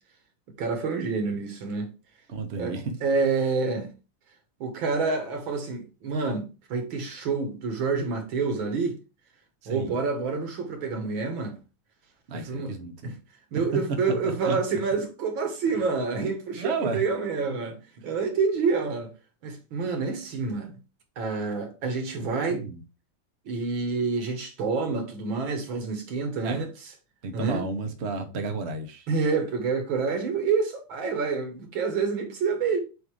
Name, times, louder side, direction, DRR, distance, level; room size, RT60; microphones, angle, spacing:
voice 1, 0.6-1.9 2.6-2.8 3.0-3.9 4.6-9.0 9.7-11.6 12.3-12.7 13.0-13.1 13.5-17.8 18.0-19.1 19.4-20.8 21.2-22.6 23.5-26.7 27.3-27.6 29.1-32.8, right 4 dB, 70° right, 2.2 m, -28 dB
voice 2, 2.3-2.9 9.6-10.0 12.3-13.1 14.2-14.6 16.6-17.0 22.5-22.8 26.4-26.6 27.2-29.1, right 4 dB, 45° right, 0.9 m, -32 dB
7.7 x 2.7 x 4.8 m
omnidirectional pair, 2.3 m